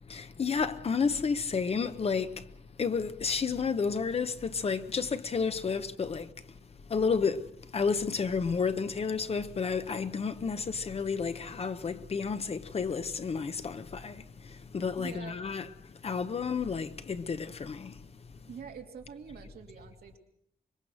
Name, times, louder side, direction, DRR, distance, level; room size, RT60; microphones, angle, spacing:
voice 1, 0.1-2.5 2.8-6.3 6.9-18.1, left 5 dB, 40° left, 0.9 m, -31 dB
voice 2, 15.0-15.3 18.5-20.2, right 7 dB, 90° right, 3.0 m, -45 dB
25.0 x 22.0 x 6.3 m
wide cardioid pair, 150°, 16 cm